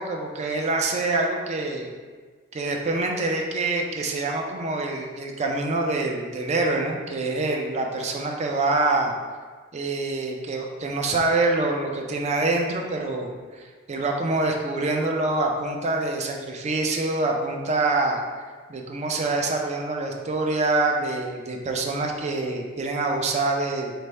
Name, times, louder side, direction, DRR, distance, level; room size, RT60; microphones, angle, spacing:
voice 1, 0.0-1.9 2.5-9.1 9.7-13.3 13.6-18.2 18.7-23.9, right 2 dB, 30° right, 2 dB, 0.4 m, -25 dB
3.3 x 2.0 x 4.1 m, 1.5 s
head